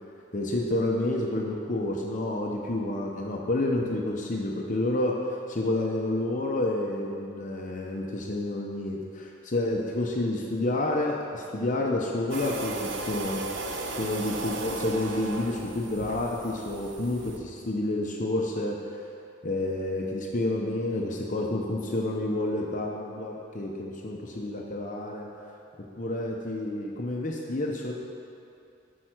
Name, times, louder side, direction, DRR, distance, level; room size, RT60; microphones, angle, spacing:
voice 1, 0.3-19.1 19.4-25.3 26.0-27.9, left 1 dB, 40° left, -1 dB, 0.8 m, -29 dB
sound 1, 12.3-17.4, right 2 dB, 75° right, 0.8 m, -35 dB
13.0 x 4.6 x 6.0 m, 2.7 s
head